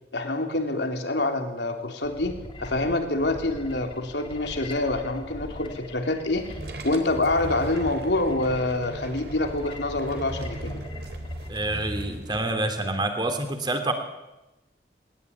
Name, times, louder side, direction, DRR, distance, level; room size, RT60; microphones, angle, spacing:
voice 1, 0.1-6.5 6.8-10.8, left 2 dB, 85° left, 4 dB, 3.5 m, -26 dB
sound 1, 2.0-11.5, left 1 dB, 30° left, 2.7 m, -42 dB
sound 2, 6.4-12.4, right 1 dB, 65° right, 3.7 m, -37 dB
voice 2, 11.5-13.9, right 2 dB, 25° right, 7 dB, 3.1 m, -27 dB
20.0 x 20.0 x 9.7 m, 1.0 s
head